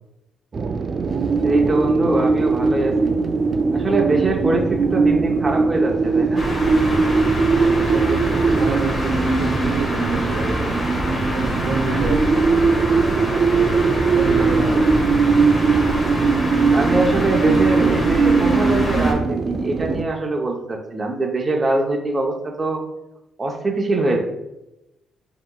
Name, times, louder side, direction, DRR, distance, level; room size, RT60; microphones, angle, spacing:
sound 1, 0.5-20.0, right 4 dB, 40° right, 0.3 m, -20 dB
voice 1, 1.4-3.2 3.7-6.4 16.7-22.8 23.4-24.2, right 2 dB, 25° right, 0 dB, 0.7 m, -23 dB
sound 2, 6.4-19.1, equal, 30° left, 1.4 m, -26 dB
voice 2, 7.4-10.7 11.3-12.2 13.5-15.1, right 3 dB, 65° right, 3 dB, 0.9 m, -28 dB
5.9 x 2.9 x 2.3 m, 0.91 s
cardioid pair, 90°, 0 cm